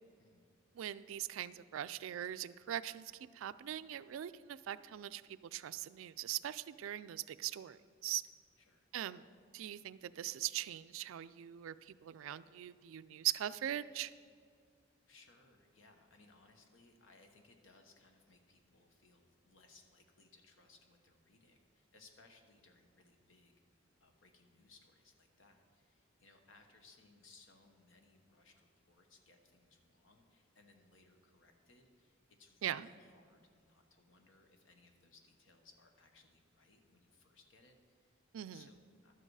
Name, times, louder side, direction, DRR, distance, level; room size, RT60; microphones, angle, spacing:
voice 1, 0.8-8.2 8.9-9.2 9.5-14.1 32.6-32.9 38.3-38.6, right 12 dB, 85° right, 15 dB, 0.3 m, -41 dB
voice 2, 8.6-8.9 15.1-23.5 24.0-38.2 38.5-39.1, left 3 dB, 75° left, 4 dB, 1.2 m, -65 dB
11.5 x 7.8 x 4.7 m, 2.1 s
head